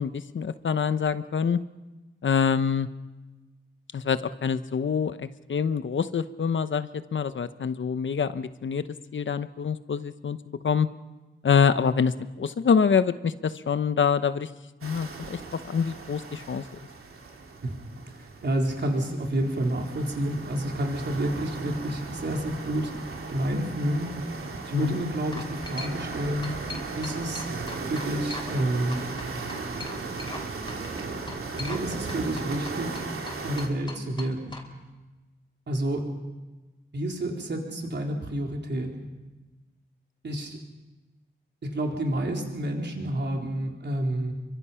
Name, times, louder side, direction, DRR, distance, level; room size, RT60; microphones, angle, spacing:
voice 1, 0.0-1.6 2.2-2.9 3.9-8.8 9.1-10.9 11.4-14.5 14.8-16.7 24.7-25.1, left 6 dB, 65° left, 12 dB, 1.0 m, -26 dB
sound 1, 14.8-33.7, right 4 dB, 85° right, 3.1 m, -37 dB
voice 2, 18.4-22.9 23.3-24.1 24.7-26.6 27.0-27.5 27.9-29.0 31.6-33.0 33.4-34.6 35.7-36.1 36.9-39.1 40.2-40.6 41.6-44.3, right 1 dB, 55° right, 1 dB, 4.0 m, -29 dB
sound 2, 24.6-24.9 25.3-26.2 26.4-28.6 28.9-30.4 30.7-30.8 31.3-34.6, left 2 dB, 20° left, 4.5 m, -40 dB
28.0 x 24.5 x 5.8 m, 1.2 s
wide cardioid pair, 115°, 21 cm